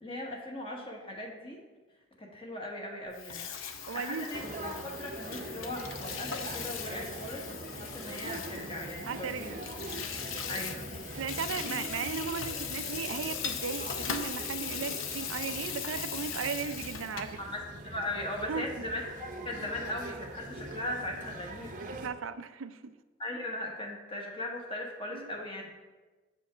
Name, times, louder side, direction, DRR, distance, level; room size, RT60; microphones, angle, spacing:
voice 1, 0.0-1.6 2.2-3.5 3.8-9.7 10.5-10.9 17.4-21.7 23.2-25.8, left 1 dB, 25° left, 0 dB, 1.2 m, -39 dB
Water tap faucet / Sink (filling or washing), 3.1-17.4, left 7 dB, 85° left, 0.7 m, -39 dB
voice 2, 3.9-4.3 9.1-9.9 10.3-10.5 11.2-17.4 18.5-18.7 21.9-22.9 25.1-25.3, right 6 dB, 90° right, 11 dB, 0.5 m, -36 dB
sound 1, 4.3-22.1, right 1 dB, 40° right, 0.7 m, -43 dB
7.6 x 5.1 x 5.0 m, 1.2 s
head